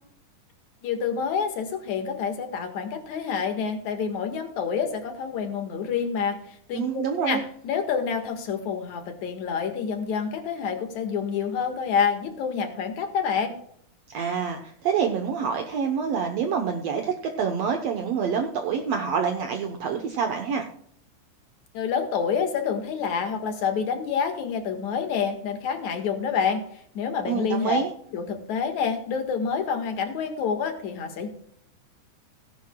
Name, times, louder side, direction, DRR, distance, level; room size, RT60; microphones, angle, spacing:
voice 1, 0.8-13.6 21.7-26.6 26.9-27.8 28.1-31.3, left 6 dB, 70° left, 6 dB, 2.9 m, -28 dB
voice 2, 6.7-7.4 14.1-20.6 27.3-27.9, right 6 dB, 65° right, 3 dB, 1.9 m, -27 dB
17.5 x 10.5 x 2.3 m, 0.65 s
omnidirectional pair, 3.5 m